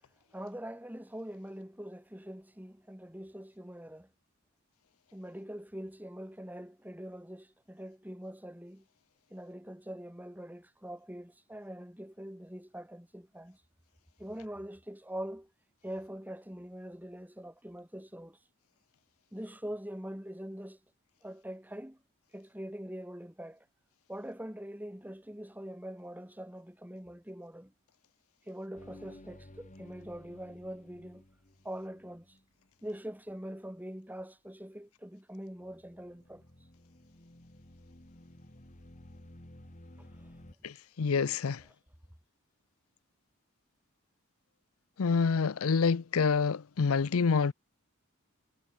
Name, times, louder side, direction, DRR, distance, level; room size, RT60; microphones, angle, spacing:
voice 1, 0.3-4.1 5.1-8.8 9.3-13.6 14.2-15.5 15.8-18.4 19.3-20.8 21.2-22.0 22.3-23.7 24.1-27.7 28.5-31.2 31.6-32.4 32.8-36.4 40.0-40.3, equal, 10° right, 2.8 m, -43 dB
sound 1, 28.7-33.0 35.5-40.5, left 1 dB, 35° left, 2.3 m, -54 dB
voice 2, 40.6-41.6 45.0-47.5, left 5 dB, 80° left, 0.6 m, -27 dB
head